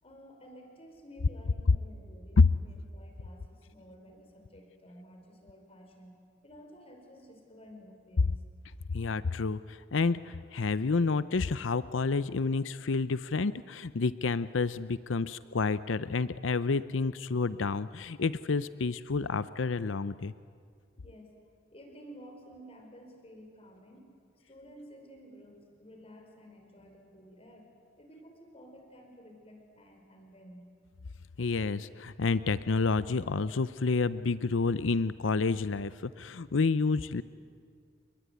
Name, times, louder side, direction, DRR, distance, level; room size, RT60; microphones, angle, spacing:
voice 1, 0.0-6.1 6.4-8.4 21.0-21.3 21.7-24.1 24.5-27.7 28.0-30.7, equal, 30° left, 3 dB, 5.4 m, -52 dB
voice 2, 8.9-20.3 31.4-37.2, left 4 dB, 90° left, 15 dB, 0.6 m, -29 dB
29.5 x 21.5 x 9.4 m, 2.2 s
head